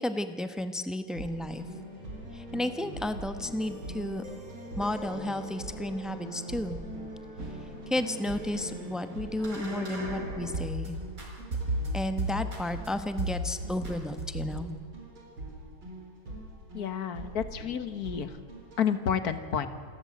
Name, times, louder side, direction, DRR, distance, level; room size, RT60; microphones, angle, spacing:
voice 1, 0.0-1.6 2.3-4.2 4.8-6.8 7.9-10.9 11.9-14.7, left 1 dB, ahead, 10 dB, 0.4 m, -32 dB
sound 1, 1.1-10.9 11.2-12.9 13.2-13.5 13.8-14.6, right 1 dB, 45° right, 4.7 m, -38 dB
sound 2, 1.1-18.8, right 2 dB, 85° right, 5.0 m, -43 dB
voice 2, 16.7-18.4 18.8-19.7, left 8 dB, 55° left, 12 dB, 1.6 m, -30 dB
28.0 x 13.5 x 7.8 m, 2.3 s
omnidirectional pair, 2.2 m